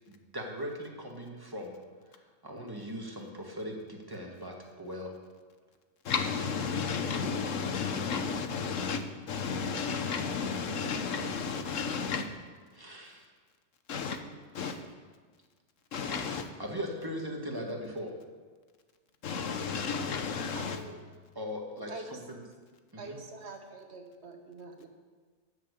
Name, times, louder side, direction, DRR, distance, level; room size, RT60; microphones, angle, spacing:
voice 1, 0.1-1.8 2.1-5.1 12.1-12.3 12.7-13.3 14.6-14.8 16.6-18.1 21.4-22.4 22.9-23.2, equal, 15° right, 1.8 m, -39 dB
voice 2, 6.0-12.2 13.9-14.2 14.5-14.8 15.9-16.5 19.2-20.8, left 5 dB, 80° left, 1.3 m, -32 dB
voice 3, 20.5-21.1 21.9-22.2 23.0-24.9, right 2 dB, 60° right, 1.5 m, -45 dB
13.0 x 6.6 x 8.3 m
omnidirectional pair, 1.3 m